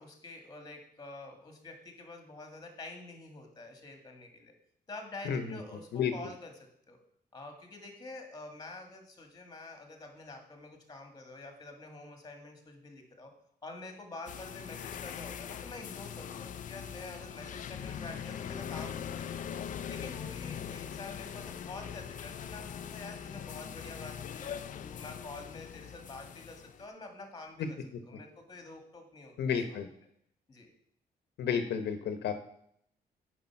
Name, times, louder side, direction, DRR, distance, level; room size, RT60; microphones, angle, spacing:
voice 1, 0.0-4.5 4.9-7.0 7.3-13.3 13.6-19.3 19.9-27.8 28.1-29.6 30.5-30.7, left 2 dB, 25° left, 4 dB, 1.8 m, -47 dB
voice 2, 5.2-5.6 5.9-6.1 27.6-27.7 29.4-29.9 31.4-32.3, left 7 dB, 90° left, 9 dB, 1.0 m, -31 dB
sound 1, 14.3-26.8, left 8 dB, 50° left, 0.5 m, -41 dB
9.5 x 5.2 x 5.9 m, 0.68 s
wide cardioid pair, 160°, 17 cm